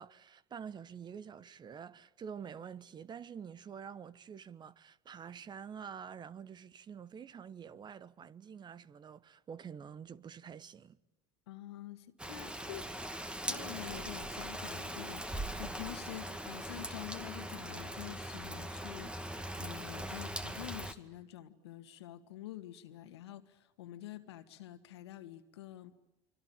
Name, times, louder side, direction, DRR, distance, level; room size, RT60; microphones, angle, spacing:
voice 1, 0.0-11.0, right 7 dB, 35° right, 1.1 m, -47 dB
voice 2, 11.5-12.9 13.2-19.3 19.6-25.9, left 13 dB, 90° left, 2.1 m, -47 dB
Rain, 12.2-20.9, right 1 dB, 5° right, 2.1 m, -41 dB
26.0 x 25.0 x 9.0 m
supercardioid pair, 90°, 13 cm